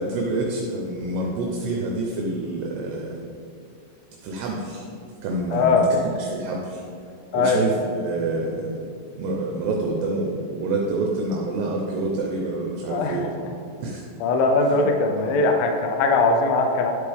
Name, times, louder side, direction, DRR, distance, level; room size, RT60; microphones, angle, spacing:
voice 1, 0.0-3.2 4.2-4.9 5.2-6.8 7.3-8.7 9.2-13.3 13.8-14.0 14.7-14.9 15.1-15.5, right 2 dB, 75° right, -1 dB, 2.8 m, -27 dB
voice 2, 5.5-5.9 7.3-7.6 12.9-13.2 14.2-16.9, left 3 dB, 75° left, 3 dB, 2.2 m, -20 dB
10.5 x 8.1 x 3.5 m, 2.4 s
omnidirectional pair, 5.1 m